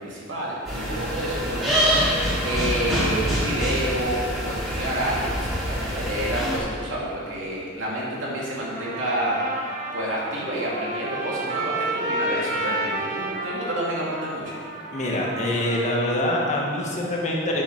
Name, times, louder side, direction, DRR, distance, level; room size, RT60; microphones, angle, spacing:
voice 1, 0.0-2.2 2.4-9.4 9.9-14.6, right 1 dB, 75° right, -5 dB, 2.7 m, -29 dB
sound 1, 0.6-6.6, equal, ahead, 2.7 m, -25 dB
Trumpet, 8.6-16.7, right 1 dB, 40° right, 1.5 m, -31 dB
voice 2, 14.9-17.6, left 1 dB, 40° left, -2 dB, 1.5 m, -25 dB
9.1 x 6.5 x 6.0 m, 2.2 s
head